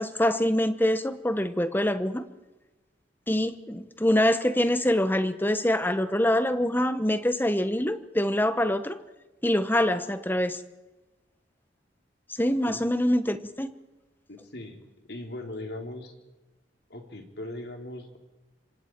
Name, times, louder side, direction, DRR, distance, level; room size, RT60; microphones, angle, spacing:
voice 1, 0.0-2.2 3.3-9.0 9.4-10.6 12.4-13.7, left 1 dB, 10° left, 11 dB, 1.1 m, -25 dB
voice 2, 14.3-14.8 15.1-16.1 16.9-18.2, left 1 dB, 65° left, 3 dB, 3.6 m, -39 dB
26.5 x 25.5 x 4.7 m, 1.1 s
head